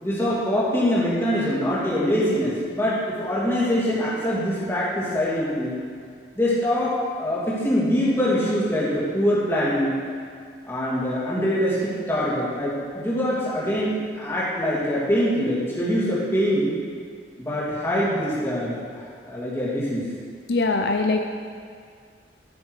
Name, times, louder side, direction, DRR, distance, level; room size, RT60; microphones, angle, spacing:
voice 1, 0.0-5.8 6.4-10.0 10.6-16.7 17.4-20.1, equal, 15° left, -8 dB, 2.8 m, -24 dB
voice 2, 20.5-21.3, left 3 dB, 70° left, 4 dB, 0.6 m, -22 dB
14.0 x 6.9 x 4.9 m, 2.2 s
head